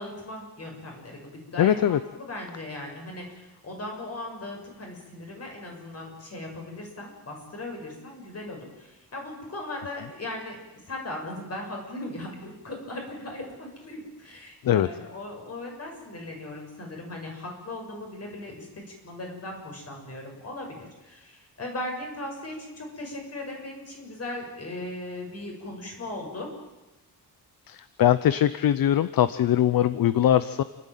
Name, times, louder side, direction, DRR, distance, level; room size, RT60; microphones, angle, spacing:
voice 1, 0.0-10.6 10.9-26.5, left 1 dB, 40° left, 1 dB, 6.7 m, -38 dB
voice 2, 1.6-2.0 14.6-14.9 27.7-30.6, left 11 dB, 65° left, 15 dB, 0.7 m, -21 dB
29.0 x 12.0 x 9.3 m, 1.1 s
wide cardioid pair, 130°, 37 cm